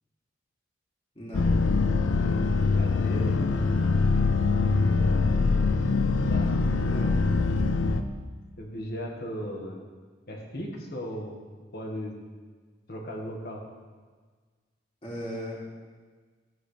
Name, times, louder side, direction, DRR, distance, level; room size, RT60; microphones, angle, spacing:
voice 1, 1.1-1.6 6.8-7.2 15.0-15.6, equal, 30° left, -5 dB, 2.8 m, -37 dB
sound 1, 1.3-8.0, left 4 dB, 85° left, 0.6 m, -23 dB
voice 2, 2.7-3.4 4.6-4.7 6.3-6.5 8.6-9.8 10.3-11.4 11.7-12.1 12.9-13.6, equal, 55° left, 0 dB, 1.7 m, -36 dB
14.5 x 8.6 x 3.4 m, 1.5 s
head